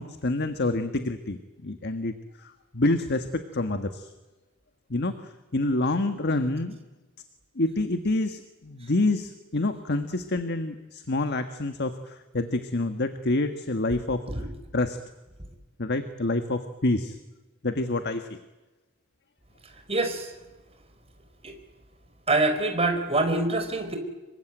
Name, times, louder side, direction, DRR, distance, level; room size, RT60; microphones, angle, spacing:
voice 1, 0.0-4.1 4.9-6.8 7.6-14.2 14.7-15.0 15.8-17.2 17.6-18.3, left 2 dB, 55° left, 8 dB, 1.5 m, -27 dB
voice 2, 19.9-20.3 21.4-21.5 22.3-24.0, right 2 dB, 30° right, 6 dB, 4.6 m, -25 dB
27.0 x 23.5 x 9.2 m, 1.1 s
head